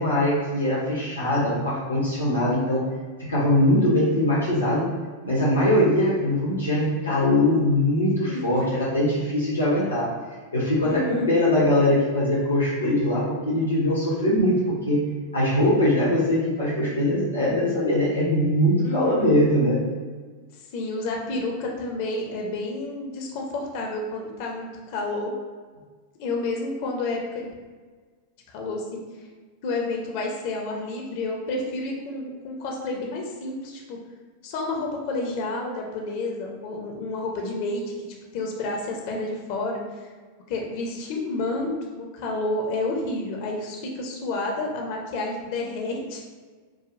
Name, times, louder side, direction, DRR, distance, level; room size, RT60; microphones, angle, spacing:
voice 1, 0.0-2.8 3.2-4.9 5.3-10.1 10.5-15.1 15.3-19.8, left 1 dB, 75° left, -8 dB, 0.8 m, -22 dB
voice 2, 8.3-8.7 10.8-11.3 18.8-19.4 20.7-25.3 26.2-27.5 28.5-29.0 29.6-34.0 34.4-38.1 38.3-39.8 40.5-46.2, left 2 dB, 45° left, 0 dB, 0.7 m, -30 dB
4.8 x 2.3 x 2.5 m, 1.5 s
figure-of-eight pair, 90°, 0 cm